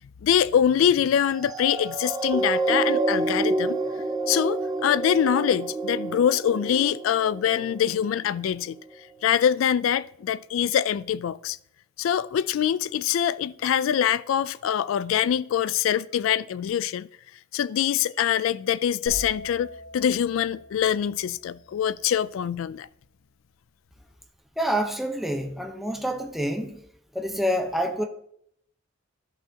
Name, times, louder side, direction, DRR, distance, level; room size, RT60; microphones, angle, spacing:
voice 1, 0.2-3.8 4.3-8.8 9.2-11.6 12.0-17.1 17.5-22.9, left 9 dB, 85° left, 0.3 m, -24 dB
sound 1, 1.4-8.1 8.7-8.8, right 3 dB, 20° right, 0.5 m, -28 dB
sound 2, 19.1-22.8, left 1 dB, 70° left, 3.2 m, -43 dB
voice 2, 24.6-26.8 27.1-28.0, equal, ahead, 0.9 m, -27 dB
14.0 x 5.7 x 2.8 m
head